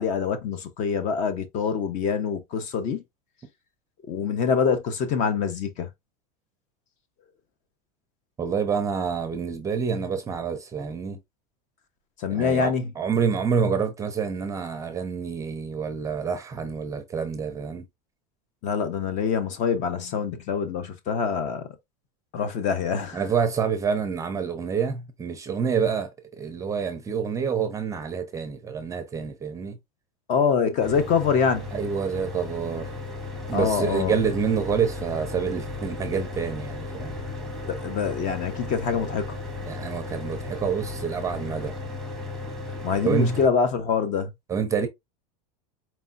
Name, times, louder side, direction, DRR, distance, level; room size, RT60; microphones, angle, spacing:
voice 1, 0.0-3.0 4.1-5.9 12.2-12.9 18.6-21.7 22.3-23.2 30.3-31.7 33.5-34.2 37.7-39.4 42.8-44.3, left 6 dB, 40° left, 0.9 m, -25 dB
voice 2, 8.4-11.2 12.3-17.9 23.1-26.1 26.4-29.8 31.7-32.9 33.5-37.2 39.7-41.7 43.0-43.4 44.5-44.9, right 6 dB, 15° right, 0.6 m, -27 dB
sound 1, 30.8-41.8, left 2 dB, 20° left, 1.6 m, -45 dB
Mechanical fan, 30.8-43.5, left 3 dB, ahead, 1.1 m, -36 dB
4.4 x 3.4 x 2.6 m
supercardioid pair, 150°, 19 cm